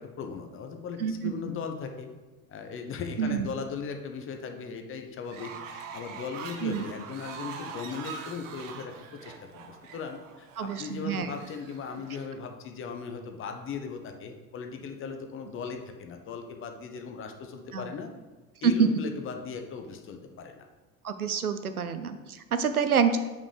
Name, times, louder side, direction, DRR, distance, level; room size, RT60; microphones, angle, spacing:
voice 1, 0.0-2.1 2.5-8.9 9.2-18.1 18.6-20.7, left 5 dB, 30° left, 5 dB, 0.8 m, -38 dB
voice 2, 1.0-1.3 3.2-3.5 6.6-6.8 10.6-11.3 17.7-17.9 18.6-18.9 21.0-23.2, right 6 dB, 90° right, 10 dB, 0.5 m, -27 dB
Fowl, 5.2-12.3, right 6 dB, 60° right, 0.9 m, -43 dB
5.4 x 5.1 x 4.8 m, 1.2 s
figure-of-eight pair, 70°, 43 cm